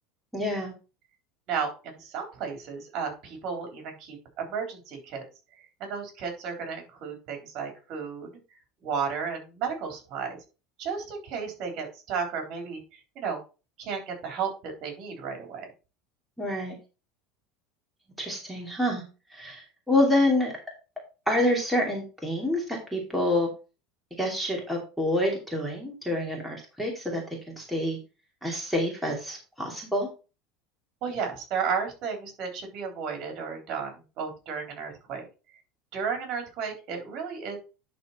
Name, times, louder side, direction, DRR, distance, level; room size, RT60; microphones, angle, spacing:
voice 1, 0.3-0.7 16.4-16.7 18.2-19.0 19.3-20.5 21.3-23.5 24.2-28.0 28.4-30.1, left 1 dB, ahead, -1 dB, 2.5 m, -27 dB
voice 2, 1.5-5.2 5.8-8.3 8.8-10.4 10.8-13.4 13.8-15.7 31.0-35.3 35.9-37.6, right 6 dB, 50° right, 3 dB, 3.8 m, -33 dB
11.0 x 4.2 x 4.3 m, 0.31 s
supercardioid pair, 135°, 0 cm